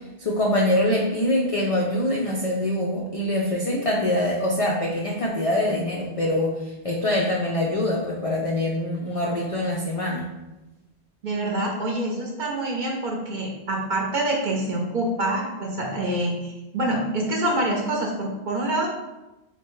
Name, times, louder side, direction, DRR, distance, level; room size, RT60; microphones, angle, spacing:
voice 1, 0.2-10.3, left 1 dB, 60° left, -3 dB, 0.3 m, -24 dB
voice 2, 11.2-18.9, right 1 dB, 50° right, -1 dB, 0.7 m, -26 dB
4.3 x 2.2 x 3.0 m, 1.0 s
omnidirectional pair, 1.2 m